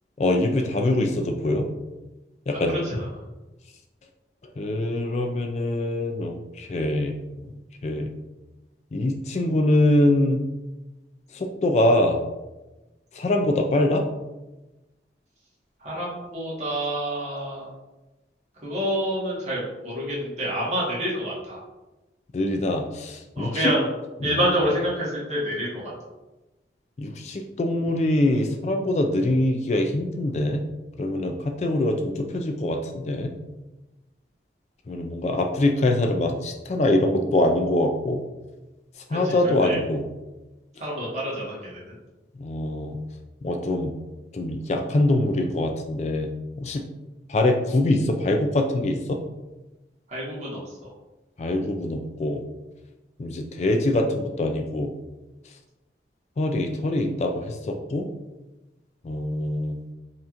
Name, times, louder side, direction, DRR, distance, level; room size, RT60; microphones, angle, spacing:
voice 1, 0.2-1.6 2.5-2.8 4.6-7.2 7.8-8.1 8.9-10.4 11.3-12.2 13.1-14.0 22.3-23.7 24.2-24.4 27.0-30.6 31.0-33.3 34.9-38.2 39.1-40.0 42.4-43.0 43.4-43.9 44.3-46.3 46.6-46.8 47.3-49.2 51.4-52.4 53.2-54.9 56.4-58.1 59.0-59.8, left 1 dB, 40° left, 4 dB, 0.3 m, -24 dB
voice 2, 2.7-3.1 15.8-17.7 18.6-21.6 23.3-23.9 24.2-25.9 39.1-39.8 40.8-41.8 50.1-50.9, equal, 40° right, -6 dB, 1.4 m, -27 dB
5.4 x 2.9 x 2.5 m, 1.1 s
head